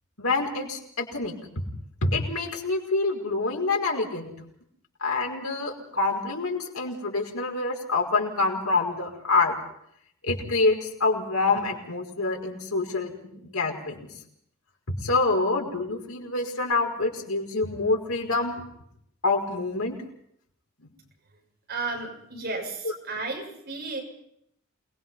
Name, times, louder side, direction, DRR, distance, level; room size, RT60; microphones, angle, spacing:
voice 1, 0.2-1.3 2.0-4.3 5.0-9.6 10.2-14.1 15.0-18.6 19.2-20.0, left 3 dB, 90° left, 1 dB, 5.3 m, -26 dB
voice 2, 21.7-24.0, right 3 dB, 50° right, 1 dB, 7.0 m, -33 dB
28.0 x 21.0 x 5.7 m, 0.72 s
head